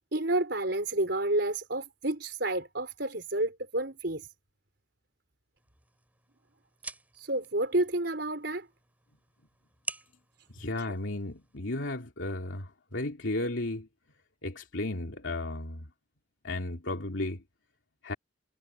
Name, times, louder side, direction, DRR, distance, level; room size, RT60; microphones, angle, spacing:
voice 1, 0.1-4.3 7.1-8.7 10.8-10.9, right 2 dB, 60° right, 4.6 m, -30 dB
sound 1, 5.6-11.6, right 3 dB, 10° right, 5.0 m, -47 dB
voice 2, 10.5-13.9 14.4-15.9 16.4-17.4 18.0-18.1, left 2 dB, 85° left, 2.6 m, -34 dB
head